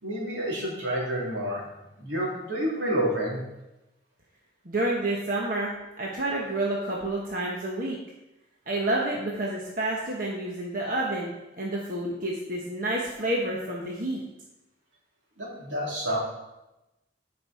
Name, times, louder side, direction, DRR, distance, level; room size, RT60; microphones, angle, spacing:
voice 1, 0.0-1.7 2.0-3.4 15.4-16.2, right 1 dB, 75° right, -4 dB, 3.2 m, -29 dB
voice 2, 4.6-8.0 8.7-14.2, right 1 dB, 45° right, -3 dB, 1.2 m, -29 dB
13.0 x 5.4 x 4.4 m, 0.96 s
head